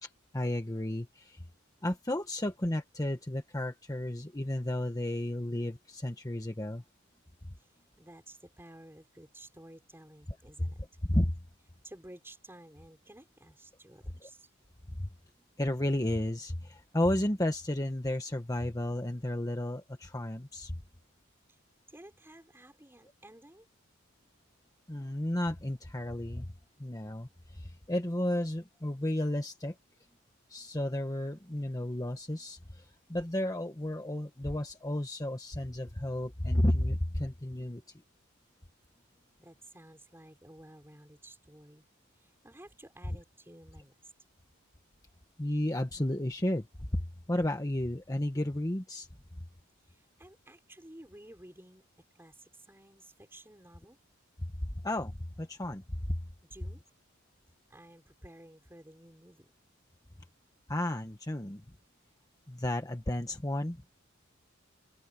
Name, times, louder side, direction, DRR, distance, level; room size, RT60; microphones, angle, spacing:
voice 1, 0.0-1.4 1.8-6.8 10.6-10.7 11.1-11.4 14.2-14.3 15.0-15.1 15.6-20.8 24.9-26.5 26.8-29.7 30.5-37.8 45.4-49.1 54.4-54.5 54.8-56.2 60.7-61.6 62.5-63.9, left 1 dB, 15° left, 1.2 m, -33 dB
voice 2, 8.0-10.8 11.8-14.5 21.5-21.6 21.9-23.7 39.4-41.9 42.2-44.0 49.9-54.0 56.4-56.8 57.7-59.5, right 1 dB, 10° right, 5.5 m, -53 dB
head